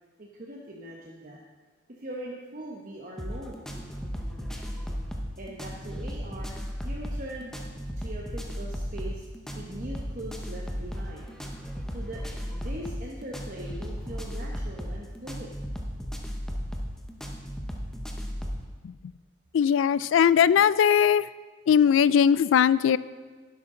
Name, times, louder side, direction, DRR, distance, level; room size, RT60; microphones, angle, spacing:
voice 1, 0.2-1.4 2.0-3.6 5.4-6.6 6.8-7.5 8.0-9.2 9.5-11.2 11.9-15.5, right 1 dB, 45° right, -2 dB, 1.0 m, -41 dB
sound 1, 3.2-18.7, equal, 5° left, 0.9 m, -35 dB
voice 2, 19.5-21.3 21.7-23.0, left 8 dB, 85° left, 18 dB, 0.3 m, -20 dB
11.5 x 10.5 x 3.8 m, 1.4 s
head